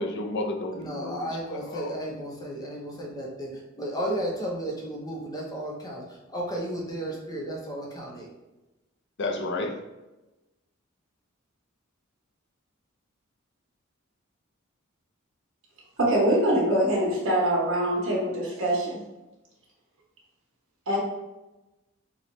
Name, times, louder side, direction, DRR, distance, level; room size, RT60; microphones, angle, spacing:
voice 1, 0.0-1.9 9.2-9.8, left 2 dB, 60° left, 3 dB, 0.5 m, -32 dB
voice 2, 0.7-8.3, right 1 dB, 20° left, -2 dB, 0.8 m, -34 dB
voice 3, 16.0-19.0 20.9-21.0, right 1 dB, 70° right, -4 dB, 1.1 m, -24 dB
4.1 x 2.3 x 3.0 m, 1.0 s
head